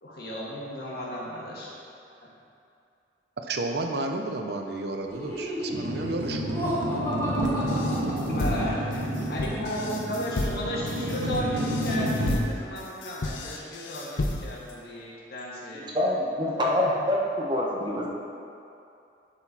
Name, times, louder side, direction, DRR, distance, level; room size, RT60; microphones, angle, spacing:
voice 1, 0.0-1.7 8.3-9.0 9.3-16.0 16.8-16.9, equal, 55° left, -5 dB, 1.6 m, -34 dB
voice 2, 3.4-6.6, right 2 dB, 60° right, 4 dB, 0.5 m, -32 dB
Laughter, 5.1-8.8, equal, 15° left, 2.0 m, -33 dB
sound 1, 5.7-12.4, equal, 90° right, 1.1 m, -30 dB
sound 2, 7.4-14.7, left 2 dB, 85° left, 0.7 m, -33 dB
voice 3, 15.9-18.1, left 1 dB, 25° right, -3 dB, 0.9 m, -25 dB
11.0 x 4.5 x 4.2 m, 2.7 s
head